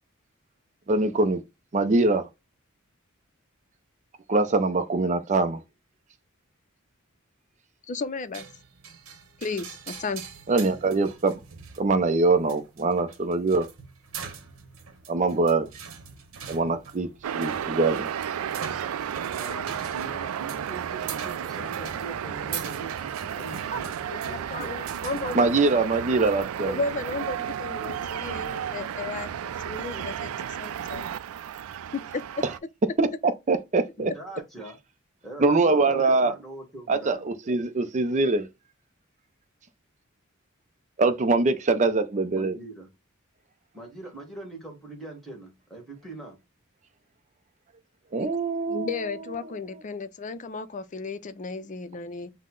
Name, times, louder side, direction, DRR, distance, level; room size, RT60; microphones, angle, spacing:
voice 1, 0.9-1.4 1.7-2.3 4.3-5.6 10.5-11.4 11.8-13.7 15.1-15.7 16.5-18.1 25.3-26.8 33.0-34.1 35.4-36.3 36.9-38.5 41.0-42.6 48.1-49.1 49.4-49.6, right 3 dB, 35° right, 0.5 m, -23 dB
voice 2, 7.9-8.5 9.4-10.2 23.7-23.8 24.1-24.2 24.5-25.4 26.7-30.3 30.6-31.1 31.9-32.2 48.2-48.3 48.7-52.3, left 4 dB, 35° left, 0.5 m, -34 dB
sound 1, 8.3-25.9, right 6 dB, 75° right, 0.9 m, -43 dB
sound 2, 17.2-32.6, right 9 dB, 90° right, 0.3 m, -33 dB
voice 3, 19.4-24.8 34.0-34.8 35.2-37.2 42.3-42.9 43.7-46.4, right 2 dB, ahead, 1.5 m, -42 dB
5.6 x 2.1 x 3.7 m
head